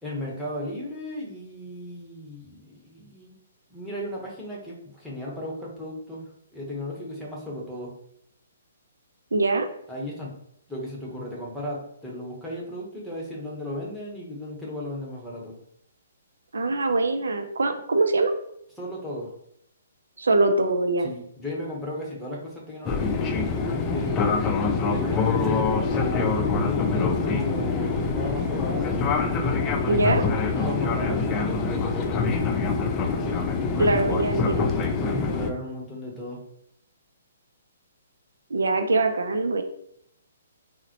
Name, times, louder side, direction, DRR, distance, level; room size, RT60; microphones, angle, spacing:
voice 1, 0.0-3.3 3.7-7.9 9.9-10.4 10.7-15.5 18.8-19.3 21.0-24.2 24.9-29.0 30.4-32.2 34.7-36.4, left 1 dB, ahead, -5 dB, 1.0 m, -35 dB
voice 2, 9.3-9.7 16.5-18.3 20.2-21.1 29.9-30.2 33.8-34.7 38.5-39.6, right 2 dB, 85° right, 7 dB, 0.4 m, -23 dB
Fixed-wing aircraft airplane, 22.8-35.5, left 4 dB, 25° left, 0.4 m, -25 dB
3.8 x 2.1 x 2.9 m, 0.74 s
hypercardioid pair, 140°, 0 cm